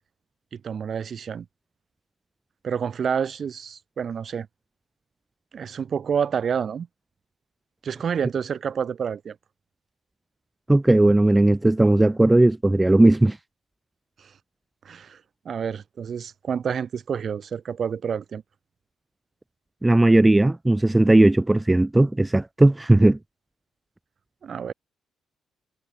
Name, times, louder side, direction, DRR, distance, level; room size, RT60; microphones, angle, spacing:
voice 1, 0.5-1.5 2.6-4.5 5.5-6.9 7.8-9.4 14.2-14.3 14.9-15.2 15.5-18.4 24.4-24.7, right 7 dB, 50° right, 1.9 m, -28 dB
voice 2, 10.7-13.4 19.8-23.2, right 2 dB, 10° right, 1.0 m, -17 dB
cardioid pair, 90°, 0 cm